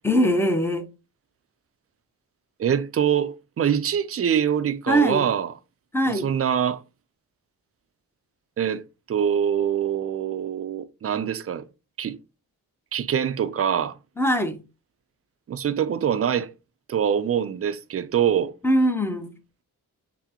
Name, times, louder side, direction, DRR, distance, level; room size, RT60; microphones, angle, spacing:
voice 1, 0.0-0.9 4.9-5.3 5.9-6.3 14.2-14.6 18.6-19.3, equal, 5° left, 0.7 m, -21 dB
voice 2, 2.6-5.5 6.1-6.8 8.6-11.7 12.0-12.2 12.9-13.9 15.5-16.5 16.9-18.5, right 8 dB, 40° right, 0.4 m, -24 dB
5.7 x 2.1 x 2.9 m
cardioid pair, 60°, 38 cm